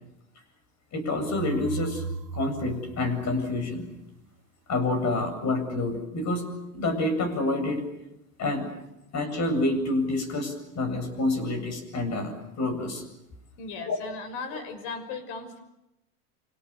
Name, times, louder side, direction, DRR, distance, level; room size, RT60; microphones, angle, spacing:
voice 1, 0.9-2.0 2.3-3.9 4.7-7.8 8.4-8.7 9.1-13.0 13.9-14.0, left 2 dB, 35° left, 9 dB, 7.9 m, -28 dB
sound 1, 1.2-4.1, right 3 dB, 85° right, 1.9 m, -37 dB
voice 2, 13.6-15.6, left 4 dB, 55° left, 10 dB, 6.1 m, -37 dB
29.5 x 26.0 x 7.0 m, 0.89 s
hypercardioid pair, 95°, 47 cm